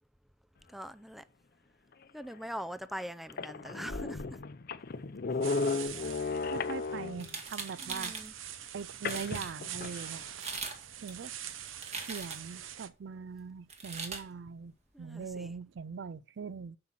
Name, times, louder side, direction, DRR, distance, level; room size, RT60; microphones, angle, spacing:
voice 1, 0.7-1.3 2.1-4.4 7.8-8.3 14.9-15.5, equal, ahead, 0.4 m, -42 dB
sound 1, 2.3-2.4 3.0-3.1 3.3-7.4 9.0-10.1, left 4 dB, 50° left, 0.6 m, -35 dB
sound 2, 5.4-12.9, right 10 dB, 80° right, 0.8 m, -45 dB
voice 2, 6.4-8.2 8.7-10.2 11.0-11.3 12.1-16.8, right 5 dB, 65° right, 0.4 m, -41 dB
sound 3, 7.1-8.3 8.8-8.9 9.0-9.5 10.3-10.8 11.1-12.6 13.7-14.2, right 4 dB, 35° right, 1.7 m, -40 dB
7.6 x 5.8 x 6.0 m
head